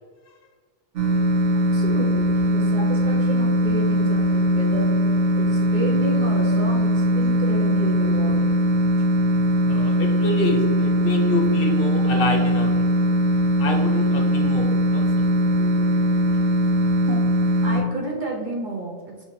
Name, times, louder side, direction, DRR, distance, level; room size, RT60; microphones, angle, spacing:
sound 1, 1.0-17.8, equal, 85° right, 1.1 m, -20 dB
voice 1, 1.7-4.9 5.4-8.6 17.1-17.2 17.6-19.2, right 2 dB, 55° right, 0 dB, 0.6 m, -31 dB
voice 2, 9.7-13.0 13.6-15.1, left 2 dB, 60° left, 2 dB, 0.8 m, -27 dB
5.5 x 2.8 x 3.0 m, 1.5 s
omnidirectional pair, 1.2 m